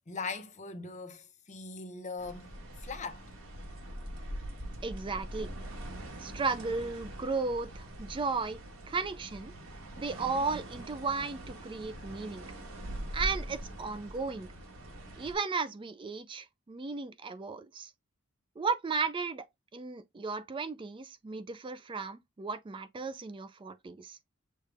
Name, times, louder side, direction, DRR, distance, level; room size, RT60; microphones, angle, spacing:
voice 1, 0.1-2.5 2.8-3.2, left 4 dB, 35° left, 0.8 m, -40 dB
sound 1, 2.2-15.3, right 1 dB, 85° right, 1.5 m, -43 dB
voice 2, 4.8-5.5 6.2-8.6 8.9-9.5 10.0-12.5 13.1-14.5 15.2-17.9 18.6-19.4 19.7-24.2, right 4 dB, 25° right, 0.4 m, -35 dB
6.5 x 2.3 x 3.3 m
head